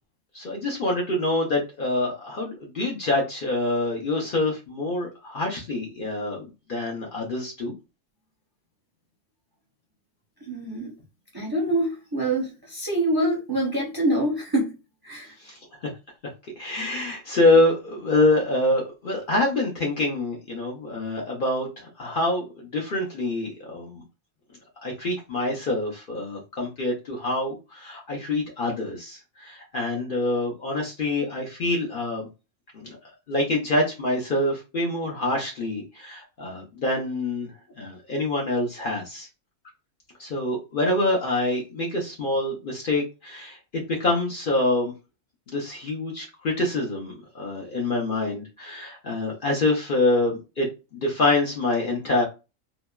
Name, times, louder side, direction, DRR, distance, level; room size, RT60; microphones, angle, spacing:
voice 1, 0.3-7.7 15.4-15.9 16.6-24.0 24.8-32.3 32.7-33.0 33.3-39.3 40.2-44.9 45.5-52.2, left 2 dB, 55° left, 0.7 m, -26 dB
voice 2, 10.5-10.9 11.3-14.7 15.0-15.3, right 1 dB, 25° right, 0.6 m, -25 dB
2.9 x 2.1 x 2.2 m
omnidirectional pair, 1.3 m